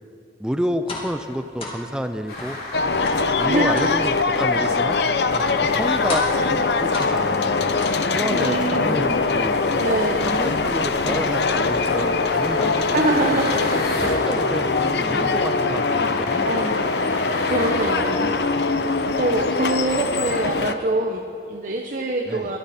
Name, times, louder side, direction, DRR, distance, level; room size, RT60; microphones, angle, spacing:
voice 1, 0.4-2.6 3.4-5.0 5.6-7.8 8.1-9.6 10.2-13.4 14.0-16.7 18.2-18.5 22.3-22.5, equal, 5° right, 8 dB, 0.5 m, -30 dB
sound 1, 0.9-1.2 1.6-1.8 2.4-2.6 3.1-3.3 3.8-4.0 4.6-4.9 5.3-5.6 6.1-6.5 6.9-7.3 7.8-8.3 8.8-9.9 10.3-10.7 11.1-11.4 11.8-12.1 12.6-12.9 13.5-13.8 14.3-14.8 15.1-15.6, left 1 dB, 30° left, 2.3 m, -34 dB
sound 2, 2.3-20.6, left 2 dB, 60° left, 3.2 m, -36 dB
sound 3, 2.7-20.7, left 4 dB, 75° left, 0.8 m, -22 dB
voice 2, 3.4-3.9 8.3-9.1 9.8-10.4 12.9-13.6 14.0-14.2 16.4-16.9 17.4-18.7 19.0-22.6, right 2 dB, 50° right, 2 dB, 1.0 m, -25 dB
22.0 x 13.0 x 4.3 m, 2.3 s
head